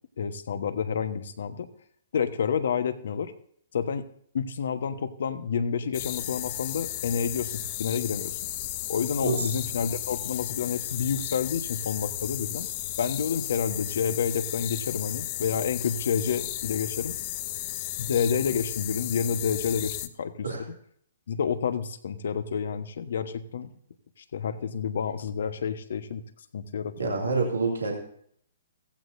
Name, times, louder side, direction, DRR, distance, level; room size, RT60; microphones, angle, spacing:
voice 1, 0.2-1.7 2.1-3.3 3.7-4.0 4.3-8.3 8.9-12.7 13.0-17.2 18.0-20.5 21.3-23.7 24.3-26.2 26.5-27.2, left 6 dB, 65° left, 11 dB, 1.2 m, -29 dB
sound 1, 5.9-20.1, left 15 dB, 40° left, 0.8 m, -34 dB
voice 2, 27.0-28.0, right 4 dB, 85° right, 0 dB, 2.4 m, -27 dB
16.0 x 15.0 x 2.7 m, 0.64 s
hypercardioid pair, 130°, 0 cm